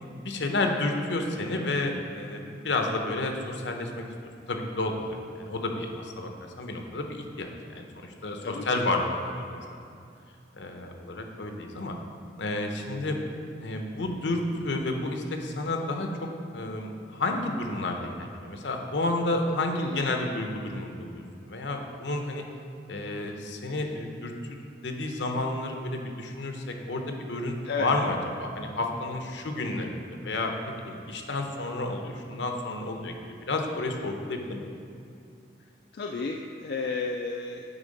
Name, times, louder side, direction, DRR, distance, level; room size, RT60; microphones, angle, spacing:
voice 1, 0.0-3.9 4.5-6.3 6.6-9.6 10.5-11.9 12.4-13.2 13.6-16.1 16.5-22.4 22.9-24.3 24.8-34.7, left 2 dB, 75° left, 3 dB, 0.8 m, -31 dB
voice 2, 8.4-8.8 19.8-20.1 27.6-27.9 35.9-37.6, left 4 dB, 55° left, 2 dB, 0.3 m, -32 dB
9.0 x 3.6 x 5.2 m, 2.5 s
head